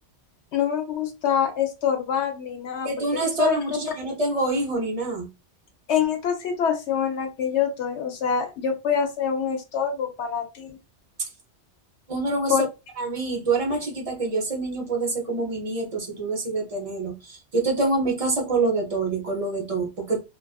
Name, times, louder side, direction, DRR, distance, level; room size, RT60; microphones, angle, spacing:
voice 1, 0.5-2.9 3.4-3.6 5.9-10.7 12.5-12.6, left 7 dB, 75° left, 0.9 m, -25 dB
voice 2, 2.8-5.3 11.2-11.3 12.1-12.7 13.0-20.2, right 3 dB, 40° right, 0.6 m, -26 dB
2.3 x 2.3 x 2.3 m
omnidirectional pair, 1.2 m